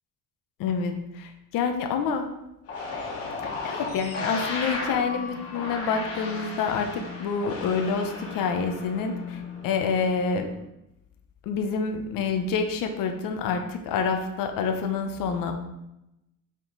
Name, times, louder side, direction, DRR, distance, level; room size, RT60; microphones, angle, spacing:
voice 1, 0.6-2.3 3.4-10.5 11.4-15.5, left 5 dB, 90° left, 5 dB, 0.8 m, -27 dB
sound 1, 2.7-10.6, left 3 dB, 45° left, 1.4 m, -35 dB
7.4 x 3.7 x 3.9 m, 0.89 s
cardioid pair, 175°, 33 cm